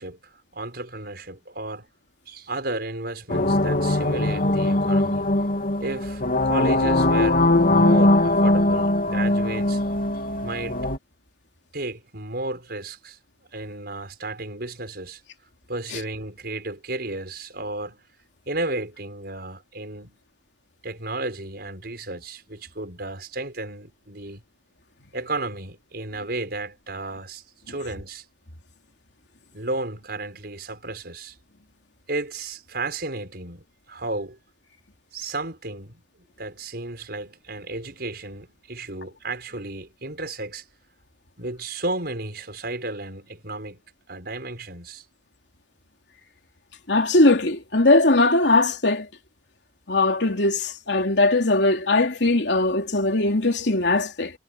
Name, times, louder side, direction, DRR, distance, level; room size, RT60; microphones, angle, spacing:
voice 1, 0.0-1.9 2.3-5.3 5.8-9.8 10.4-10.8 11.7-13.2 13.5-15.2 15.7-18.1 18.5-20.2 20.8-24.4 25.1-28.2 29.5-31.4 32.1-34.4 35.1-40.6 41.4-45.0, right 2 dB, 60° right, 6.3 m, -33 dB
sound 1, 3.3-11.0, left 1 dB, 55° left, 3.1 m, -21 dB
voice 2, 46.9-49.1 49.9-54.3, left 2 dB, 85° left, 3.1 m, -20 dB
head